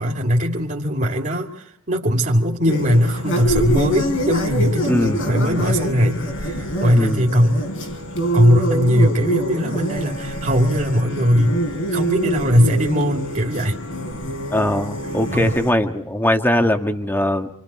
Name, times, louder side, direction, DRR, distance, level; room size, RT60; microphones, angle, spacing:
voice 1, 0.0-7.6 8.3-11.6 11.9-13.8 15.3-15.6, equal, 40° right, 0 dB, 2.5 m, -19 dB
sound 1, 2.7-15.7, equal, 60° left, 4.6 m, -25 dB
voice 2, 4.9-5.3 6.9-7.3 14.5-17.5, left 1 dB, 10° left, 5 dB, 1.6 m, -20 dB
28.0 x 28.0 x 4.4 m, 0.69 s
head